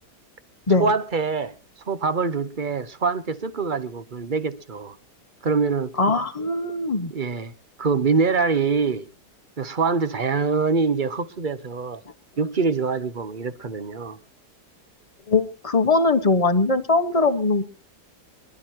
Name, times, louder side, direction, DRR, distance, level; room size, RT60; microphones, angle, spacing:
voice 1, 0.8-1.5 1.9-5.0 5.4-6.0 7.1-7.5 7.8-9.1 9.6-12.0 12.4-14.2, right 4 dB, 35° right, 0.9 m, -24 dB
voice 2, 6.0-7.1 15.3-17.6, left 3 dB, 25° left, 1.2 m, -21 dB
26.0 x 12.0 x 3.0 m
omnidirectional pair, 1.8 m